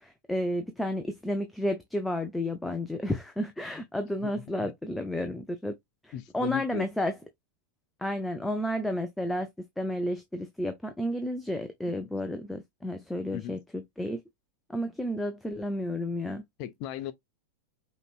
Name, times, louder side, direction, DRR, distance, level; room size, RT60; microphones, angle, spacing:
voice 1, 0.0-5.8 6.0-7.1 8.0-9.5 9.8-14.2 14.7-16.4, left 1 dB, 5° left, 0.5 m, -31 dB
voice 2, 4.2-4.7 6.1-6.9 13.3-13.6 16.6-17.1, left 12 dB, 45° left, 0.7 m, -37 dB
5.1 x 3.1 x 2.4 m
figure-of-eight pair, 90°, 0 cm